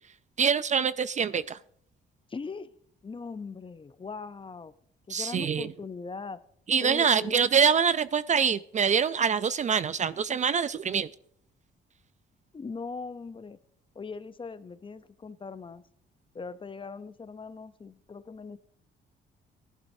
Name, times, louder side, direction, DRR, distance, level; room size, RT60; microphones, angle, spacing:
voice 1, 0.4-1.6 5.1-5.7 6.7-11.1, right 6 dB, 35° right, 16 dB, 0.4 m, -25 dB
voice 2, 2.3-2.7 3.0-4.7 5.1-6.4 6.8-7.4 12.5-13.6 14.0-15.8 16.3-18.6, left 4 dB, 25° left, 14 dB, 0.6 m, -40 dB
17.0 x 11.0 x 2.6 m, 0.65 s
cardioid pair, 90°, 20 cm